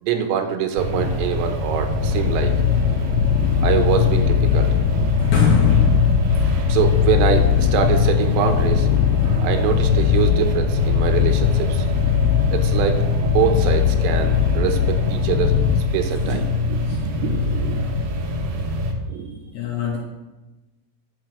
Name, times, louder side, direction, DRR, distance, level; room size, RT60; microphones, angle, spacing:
voice 1, 0.0-2.5 3.6-5.2 6.7-8.9 9.4-11.9 12.5-16.8 17.1-17.8 19.1-19.4, right 8 dB, 85° right, 6 dB, 3.7 m, -24 dB
sound 1, 0.8-18.9, left 2 dB, 65° right, 2.5 m, -24 dB
sound 2, 1.9-15.8, left 10 dB, 90° left, 3.2 m, -20 dB
voice 2, 5.2-6.5 16.9-17.0 19.5-20.0, left 5 dB, 70° left, -1 dB, 2.5 m, -21 dB
11.0 x 6.1 x 7.8 m, 1.1 s
omnidirectional pair, 5.8 m